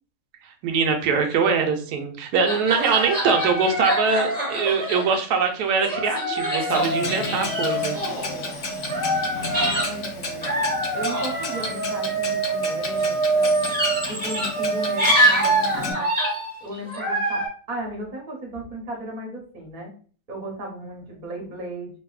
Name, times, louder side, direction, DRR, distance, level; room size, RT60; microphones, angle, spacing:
voice 1, 0.6-8.0, right 5 dB, 75° right, 4 dB, 1.1 m, -23 dB
sound 1, 2.5-5.4 5.8-9.9 10.4-17.5, right 1 dB, 5° left, 0.8 m, -24 dB
Clock, 6.7-15.9, left 1 dB, 65° left, 0.6 m, -32 dB
voice 2, 9.5-10.5 10.9-13.5 14.0-16.1 16.6-19.9 20.3-21.9, right 1 dB, 35° right, -1 dB, 0.7 m, -35 dB
2.7 x 2.6 x 2.3 m, 0.41 s
omnidirectional pair, 1.8 m